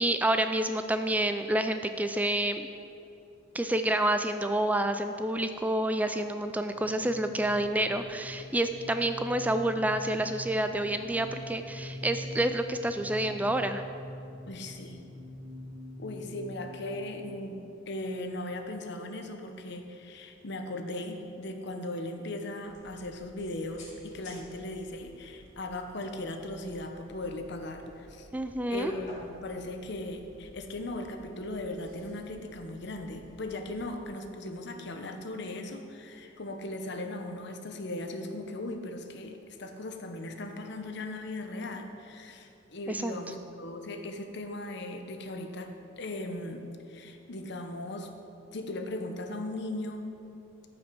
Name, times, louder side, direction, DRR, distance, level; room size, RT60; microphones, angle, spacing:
voice 1, 0.0-2.7 3.5-13.8 28.3-28.9 42.9-43.1, right 1 dB, 10° right, 8 dB, 0.3 m, -28 dB
sound 1, 6.1-18.6, left 1 dB, 50° right, 2.4 m, -44 dB
voice 2, 14.5-15.0 16.0-28.3 28.7-46.6 46.9-48.1 48.5-50.1, left 1 dB, 65° left, 6 dB, 0.9 m, -38 dB
sound 2, 22.6-34.1, equal, 40° left, 2.6 m, -53 dB
13.5 x 5.9 x 5.3 m, 2.7 s
head